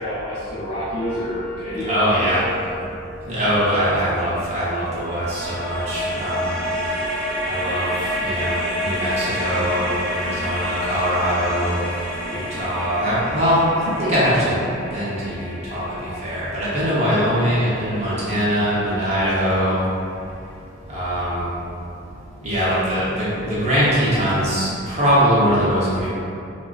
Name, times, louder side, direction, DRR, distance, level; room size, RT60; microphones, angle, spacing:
voice 1, 0.0-2.3, left 1 dB, 40° left, -14 dB, 0.7 m, -29 dB
sound 1, 1.0-4.3 5.0-19.9, equal, ahead, 0.5 m, -30 dB
voice 2, 1.8-2.5 3.3-6.5 7.5-7.9 8.2-11.8 12.3-14.6 14.9-15.9 16.2-19.8 20.9-21.5 22.4-26.1, equal, 30° right, -10 dB, 0.8 m, -22 dB
sound 2, 5.0-16.0, left 2 dB, 65° left, 0.3 m, -37 dB
3.5 x 2.3 x 2.4 m, 2.6 s
head